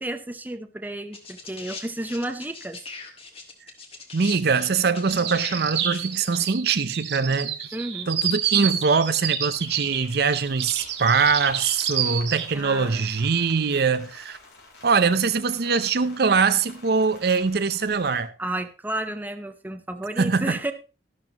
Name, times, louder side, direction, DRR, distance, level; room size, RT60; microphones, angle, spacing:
voice 1, 0.0-2.8 7.7-8.1 12.5-13.0 18.4-20.7, right 1 dB, 10° right, 0.8 m, -32 dB
sound 1, 1.1-6.3 7.4-7.5, left 4 dB, 35° left, 2.0 m, -40 dB
voice 2, 4.1-7.6 8.1-14.4 14.8-18.3 20.2-20.5, right 5 dB, 60° right, 0.7 m, -22 dB
sound 2, 5.1-12.5, right 9 dB, 85° right, 1.7 m, -28 dB
Rain, 9.5-18.2, left 2 dB, 70° left, 4.1 m, -49 dB
12.5 x 12.0 x 3.0 m
head